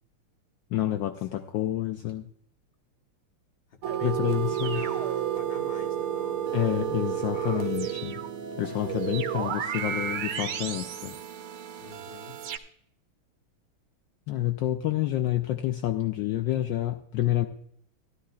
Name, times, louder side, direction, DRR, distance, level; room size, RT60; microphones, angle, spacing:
voice 1, 0.7-2.3 4.0-4.8 6.5-8.2 8.6-11.2 14.3-17.5, left 14 dB, 75° left, 8 dB, 1.2 m, -28 dB
voice 2, 3.7-8.1 11.8-12.4, left 4 dB, 35° left, 4 dB, 1.1 m, -46 dB
sound 1, 3.8-12.6, right 10 dB, 80° right, 1.7 m, -31 dB
13.0 x 13.0 x 2.3 m, 0.69 s
omnidirectional pair, 2.3 m